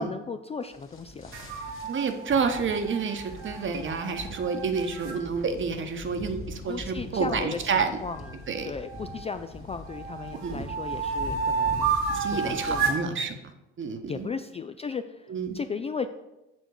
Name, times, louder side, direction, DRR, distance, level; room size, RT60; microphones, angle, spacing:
voice 1, 0.0-1.4 6.7-7.7 8.0-8.3 8.6-12.0 12.3-13.0 14.1-15.3 15.5-16.1, left 5 dB, 20° left, 9 dB, 0.4 m, -35 dB
sound 1, 0.6-13.0, left 1 dB, 40° left, 1.7 m, -43 dB
sound 2, 1.3-5.2 8.1-9.4 9.9-13.1, right 5 dB, 80° right, 1.1 m, -31 dB
voice 2, 1.8-7.9 8.5-8.7 10.4-10.7 12.1-13.3 13.8-14.3 15.3-15.6, right 5 dB, 40° right, 7 dB, 1.1 m, -29 dB
7.2 x 3.7 x 6.4 m, 0.98 s
hypercardioid pair, 60°, 31 cm